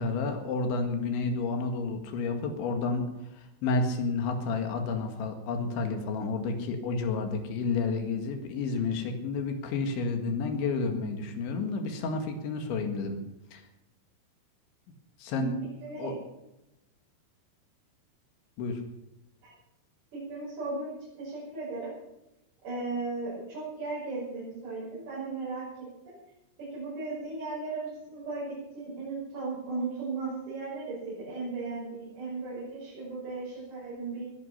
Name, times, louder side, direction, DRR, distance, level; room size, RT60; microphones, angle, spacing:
voice 1, 0.0-13.2 13.5-13.6 15.2-15.5 16.0-16.1 18.6-18.8, left 4 dB, 80° left, 5 dB, 4.2 m, -30 dB
voice 2, 15.8-16.2 19.4-19.5 20.1-21.9 22.6-26.2 26.6-34.2, right 3 dB, 55° right, -8 dB, 8.1 m, -36 dB
20.0 x 11.0 x 5.7 m, 0.94 s
omnidirectional pair, 5.2 m